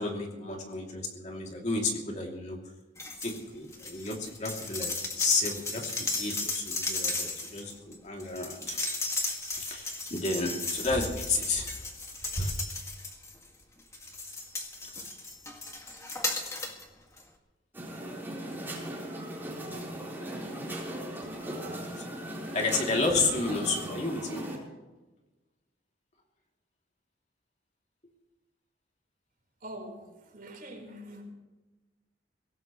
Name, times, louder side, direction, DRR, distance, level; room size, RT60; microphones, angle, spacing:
voice 1, 0.0-2.6 3.2-8.8 9.6-11.7 12.2-12.6 21.7-22.1 22.5-24.5, left 3 dB, 40° left, 0 dB, 2.9 m, -31 dB
sound 1, 3.0-3.4 3.7-13.5 13.9-16.8 17.2-17.3, left 3 dB, 15° left, 2.0 m, -35 dB
sound 2, 17.7-24.6, right 1 dB, 10° right, 4.1 m, -38 dB
voice 2, 29.6-31.2, right 1 dB, 50° right, 1 dB, 4.5 m, -44 dB
23.0 x 17.5 x 3.2 m, 1.1 s
head